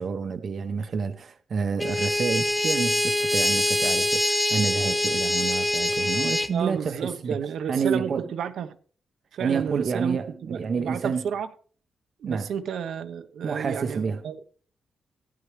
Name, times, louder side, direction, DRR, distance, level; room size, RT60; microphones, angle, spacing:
voice 1, 0.0-7.4 7.7-8.3 9.4-11.3 12.2-12.5 13.4-14.2, right 5 dB, 45° right, 0.7 m, -29 dB
sound 1, 1.8-6.5, left 1 dB, 5° left, 0.6 m, -24 dB
voice 2, 6.5-8.8 9.3-11.5 12.2-14.4, right 7 dB, 80° right, 0.9 m, -32 dB
14.5 x 9.6 x 3.3 m
wide cardioid pair, 150°, 0 cm